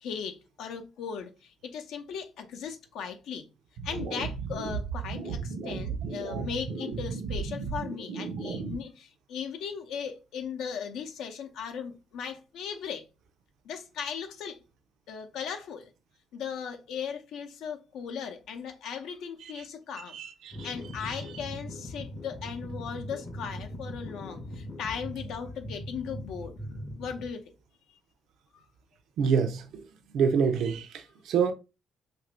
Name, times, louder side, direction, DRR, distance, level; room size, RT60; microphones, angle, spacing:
voice 1, 0.0-3.5 3.8-13.0 13.6-14.6 15.1-15.9 16.3-20.2 20.6-26.5 27.0-27.5 27.9-28.0 28.5-28.6, left 7 dB, 80° left, 0.6 m, -37 dB
sound 1, 3.8-8.8, right 5 dB, 85° right, 0.9 m, -34 dB
voice 2, 20.1-20.7 21.0-21.4 29.2-29.6 30.1-31.5, right 6 dB, 70° right, 0.4 m, -27 dB
sound 2, 20.5-27.3, left 1 dB, 25° left, 0.5 m, -40 dB
2.9 x 2.6 x 3.2 m
cardioid pair, 140°, 0 cm